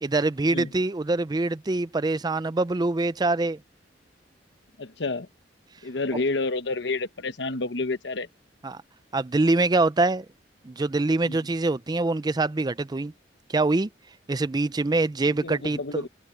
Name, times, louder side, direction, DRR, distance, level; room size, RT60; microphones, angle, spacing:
voice 1, 0.0-3.6 8.6-8.8 9.1-10.3 10.6-13.1 13.5-13.9 14.3-16.1, right 2 dB, 20° right, 0.4 m, -24 dB
voice 2, 4.8-5.3 5.8-8.3 11.2-11.4 15.4-16.1, left 3 dB, 70° left, 1.1 m, -29 dB
head